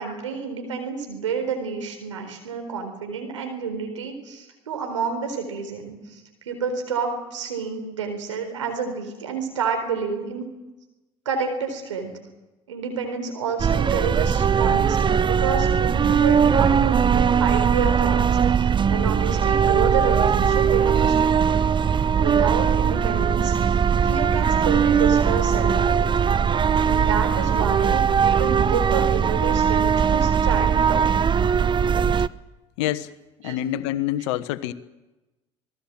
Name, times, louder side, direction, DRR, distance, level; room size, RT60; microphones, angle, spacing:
voice 1, 0.0-6.2 6.5-10.4 11.3-12.1 12.7-21.6 22.2-26.1 26.8-31.2 33.4-33.6, right 5 dB, 90° right, 5 dB, 4.1 m, -29 dB
sound 1, 13.6-32.3, right 7 dB, 30° right, 0.8 m, -20 dB
voice 2, 32.8-33.1 33.4-34.7, left 13 dB, 75° left, 13 dB, 1.2 m, -26 dB
27.0 x 19.0 x 7.6 m, 1.1 s
hypercardioid pair, 60°, 15 cm